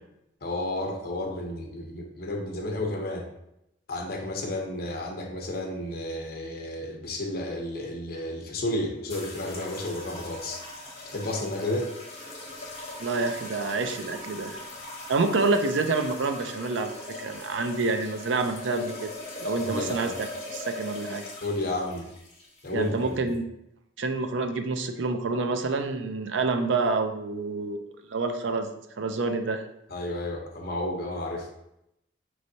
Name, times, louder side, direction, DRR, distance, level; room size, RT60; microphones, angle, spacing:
voice 1, 0.4-3.3 3.9-10.6 11.0-11.9 19.6-20.1 21.4-22.1 22.6-23.1 29.9-31.5, left 1 dB, 55° left, 1 dB, 0.8 m, -32 dB
sound 1, 9.1-23.4, left 2 dB, 30° left, 1.0 m, -40 dB
voice 2, 13.0-14.6 15.1-16.9 17.2-19.1 19.4-21.2 22.7-23.4 24.0-27.8 28.1-28.7 29.0-29.6, right 3 dB, 75° right, 7 dB, 0.5 m, -27 dB
5.2 x 3.1 x 2.7 m, 0.84 s
head